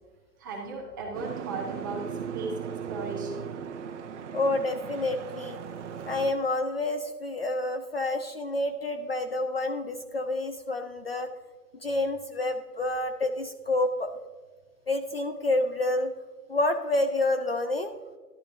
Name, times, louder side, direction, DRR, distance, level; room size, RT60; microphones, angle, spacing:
voice 1, 0.4-3.5, right 3 dB, 15° right, -1 dB, 0.7 m, -36 dB
Boat Water vehicle, 1.1-6.3, right 8 dB, 50° right, 0.9 m, -38 dB
voice 2, 4.3-5.6 6.1-11.3 11.8-14.1 14.9-16.1 16.5-17.9, left 2 dB, 40° left, 8 dB, 0.5 m, -28 dB
11.5 x 10.5 x 2.6 m, 1.4 s
hypercardioid pair, 165°, 47 cm